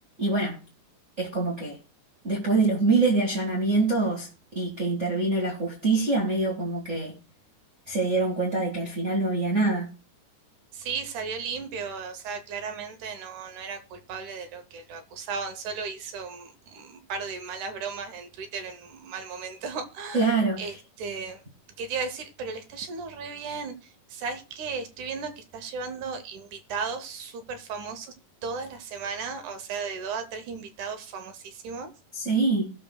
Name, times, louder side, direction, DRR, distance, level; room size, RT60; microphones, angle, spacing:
voice 1, 0.2-0.6 1.2-1.8 2.2-7.1 7.9-9.9 20.1-20.8 32.1-32.7, right 3 dB, 30° right, 1.6 m, -25 dB
voice 2, 10.7-20.3 20.6-21.4 21.8-23.8 24.1-28.1 28.4-31.9, right 5 dB, 70° right, 2.3 m, -35 dB
20.0 x 6.7 x 2.3 m
omnidirectional pair, 3.7 m